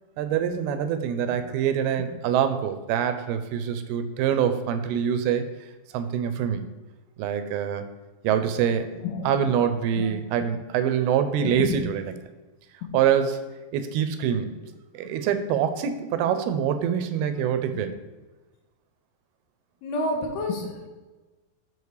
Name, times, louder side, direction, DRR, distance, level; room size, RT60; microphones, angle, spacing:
voice 1, 0.2-5.5 5.9-6.7 7.2-7.8 8.2-8.9 9.2-12.0 12.9-13.4 13.7-14.6 14.9-17.9, right 8 dB, 85° right, 10 dB, 2.6 m, -25 dB
voice 2, 11.4-11.8 12.8-12.9 19.8-20.9, left 3 dB, 85° left, 2 dB, 3.1 m, -29 dB
8.3 x 5.1 x 4.7 m, 1.2 s
omnidirectional pair, 4.4 m